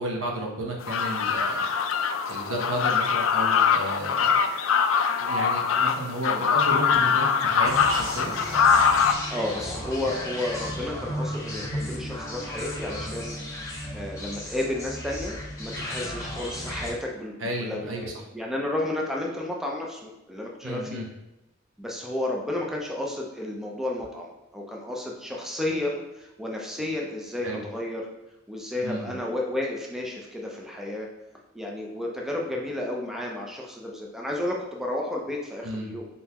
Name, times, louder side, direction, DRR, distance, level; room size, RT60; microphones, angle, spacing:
voice 1, 0.0-1.7 2.3-4.4 5.2-8.3 17.4-18.1 20.6-21.0 27.4-27.6 28.8-29.2 35.6-35.9, right 1 dB, 70° right, 0 dB, 0.9 m, -32 dB
sound 1, 0.8-9.1, left 6 dB, 70° left, 0.4 m, -23 dB
sound 2, 7.6-16.9, left 1 dB, 15° left, 1.1 m, -34 dB
voice 2, 9.3-17.3 17.6-21.0 21.8-28.1 28.5-31.1 31.5-36.1, left 1 dB, ahead, -1 dB, 0.5 m, -32 dB
4.1 x 3.8 x 2.9 m, 0.95 s
head